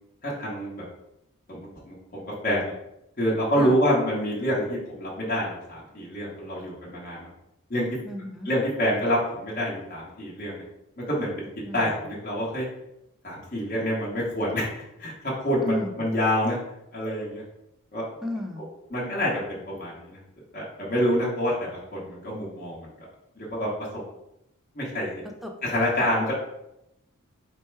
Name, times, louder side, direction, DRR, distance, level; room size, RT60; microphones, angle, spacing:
voice 1, 0.2-0.8 1.5-2.7 3.2-7.3 7.7-7.9 8.4-10.6 11.1-11.5 11.7-12.7 13.2-16.6 16.9-17.4 17.9-18.0 18.9-20.2 20.5-22.9 23.4-23.7 24.7-25.1 25.6-26.4, equal, 40° left, -6 dB, 1.1 m, -27 dB
voice 2, 8.0-8.5 11.6-11.9 15.6-16.1 18.2-18.7 25.2-25.6 26.0-26.1, left 1 dB, ahead, 3 dB, 0.4 m, -34 dB
4.5 x 2.2 x 4.5 m, 0.85 s
head